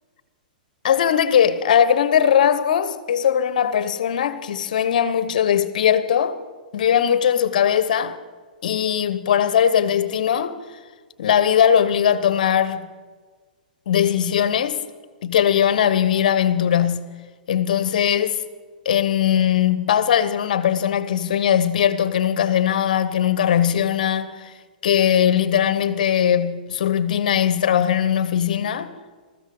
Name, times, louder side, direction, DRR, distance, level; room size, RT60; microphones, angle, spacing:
voice 1, 0.8-6.4 6.7-8.2 8.6-10.5 11.2-12.9 13.9-14.8 15.2-17.1 17.5-18.4 18.8-24.5 24.8-28.9, left 9 dB, 65° left, 1.0 m, -19 dB
20.5 x 14.0 x 3.9 m
hypercardioid pair, 115°, 5 cm